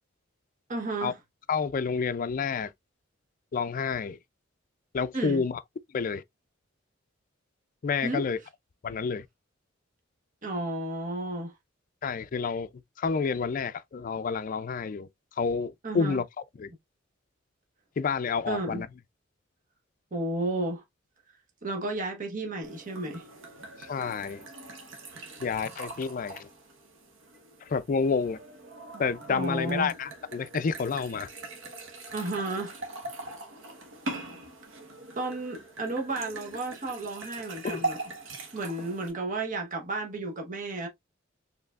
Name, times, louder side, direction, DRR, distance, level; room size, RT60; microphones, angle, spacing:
voice 1, 0.7-1.2 5.1-5.4 8.0-8.2 10.4-11.5 15.8-16.2 18.5-18.8 20.1-20.8 21.6-23.2 29.3-29.9 32.1-32.7 35.2-38.0 38.5-40.9, right 2 dB, 40° right, 1.0 m, -32 dB
voice 2, 1.5-2.7 3.5-4.2 4.9-5.6 5.9-6.2 7.8-8.4 8.8-9.3 12.0-12.7 13.0-15.1 15.4-16.2 16.6-16.7 18.0-18.9 23.8-24.4 25.4-26.5 27.6-28.4 29.0-31.3 37.6-37.8, left 5 dB, 40° left, 0.3 m, -29 dB
sound 1, 22.6-39.1, right 2 dB, 75° right, 1.3 m, -41 dB
4.5 x 3.2 x 2.4 m
head